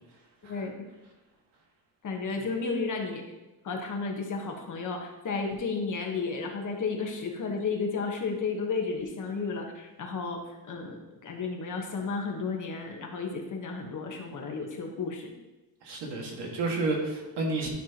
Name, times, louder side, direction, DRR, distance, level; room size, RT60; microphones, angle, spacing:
voice 1, 0.4-0.8 2.0-3.2 3.6-10.4 10.7-15.3, left 4 dB, 45° left, 1 dB, 1.3 m, -33 dB
voice 2, 15.8-17.7, right 3 dB, 70° right, -1 dB, 2.0 m, -30 dB
12.0 x 5.9 x 3.0 m, 1.0 s
cardioid pair, 160°, 42 cm